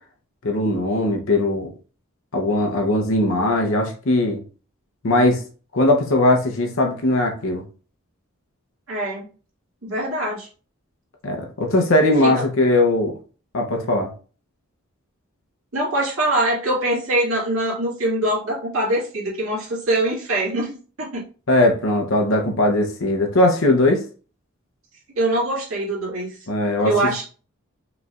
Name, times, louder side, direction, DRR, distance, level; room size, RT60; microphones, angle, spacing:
voice 1, 0.4-1.7 2.3-4.4 5.0-5.4 5.7-7.6 11.2-13.1 13.5-14.1 21.5-24.0 26.5-26.9, left 1 dB, 70° left, 2 dB, 0.7 m, -19 dB
voice 2, 8.9-9.3 9.8-10.5 12.2-12.4 15.7-21.2 25.2-26.4 26.8-27.2, right 1 dB, 80° right, -6 dB, 1.9 m, -23 dB
4.9 x 3.2 x 2.4 m, 0.38 s
head